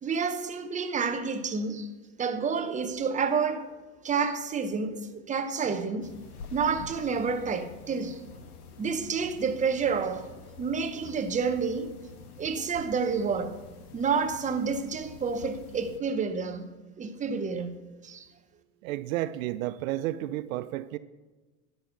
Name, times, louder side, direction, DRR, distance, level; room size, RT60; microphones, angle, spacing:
voice 1, 0.0-1.9 2.2-3.7 4.0-6.1 6.5-8.2 8.8-10.3 10.6-11.9 12.4-13.6 13.9-16.7 17.0-17.8 18.0-18.3, right 5 dB, 15° right, 0.9 m, -29 dB
sound 1, 6.0-16.0, left 5 dB, 85° left, 1.2 m, -47 dB
voice 2, 18.8-21.0, right 15 dB, 70° right, 0.6 m, -32 dB
11.5 x 5.6 x 6.8 m
hypercardioid pair, 105°, 44 cm